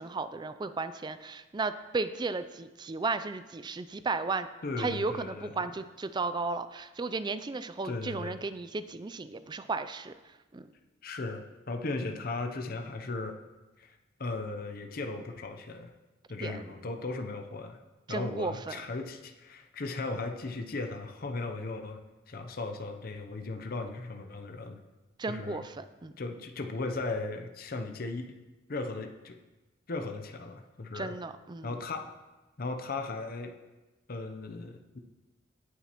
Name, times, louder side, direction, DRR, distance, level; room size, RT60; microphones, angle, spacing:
voice 1, 0.0-4.5 4.8-10.1 10.5-10.7 16.4-16.6 18.1-18.8 25.2-26.1 30.9-31.7, right 3 dB, 25° right, 11 dB, 0.4 m, -34 dB
voice 2, 4.6-5.7 7.8-8.4 11.0-13.4 13.8-13.9 14.2-15.9 16.3-17.8 18.1-22.0 22.3-24.8 25.2-25.6 26.2-28.4 28.7-29.4 29.9-31.1 31.6-32.2 32.6-33.6 34.1-35.0, left 3 dB, 50° left, 5 dB, 0.7 m, -37 dB
17.5 x 7.1 x 3.0 m, 1.1 s
head